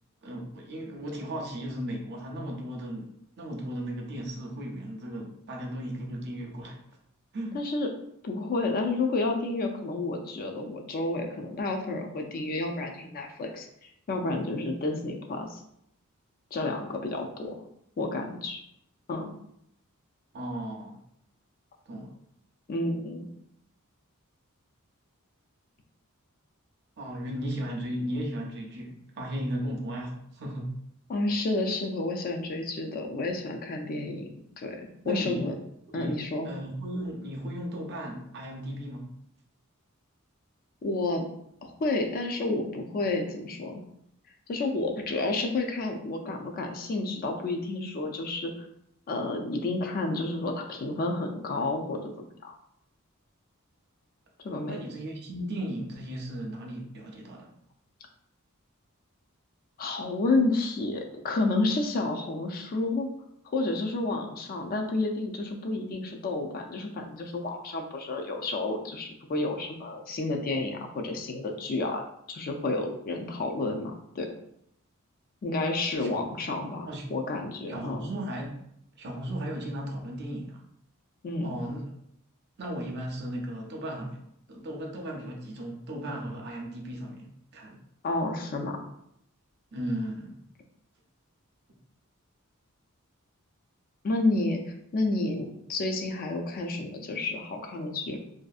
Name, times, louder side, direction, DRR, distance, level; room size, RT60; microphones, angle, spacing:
voice 1, 0.2-6.8 7.3-7.7 17.4-17.5 20.3-21.0 21.9-22.2 27.0-30.7 35.0-35.5 35.9-36.1 36.4-39.1 54.7-57.5 76.0-76.2 76.8-77.1 77.7-78.5 79.0-80.6 81.4-81.9 82.6-84.2 84.5-87.8 89.7-90.4, right 1 dB, 50° right, 1 dB, 0.5 m, -36 dB
voice 2, 7.5-7.9 8.2-15.6 16.5-17.5 18.0-18.6 19.1-19.3 22.7-23.3 31.1-34.3 34.6-35.5 35.9-36.5 40.8-41.2 41.6-43.8 44.5-48.5 49.1-52.5 54.4-54.8 59.8-63.1 63.4-72.0 72.3-74.3 75.4-78.1 81.2-81.5 88.0-88.8 94.0-98.2, left 2 dB, 40° left, 3 dB, 0.3 m, -30 dB
2.6 x 2.4 x 2.3 m, 0.74 s
head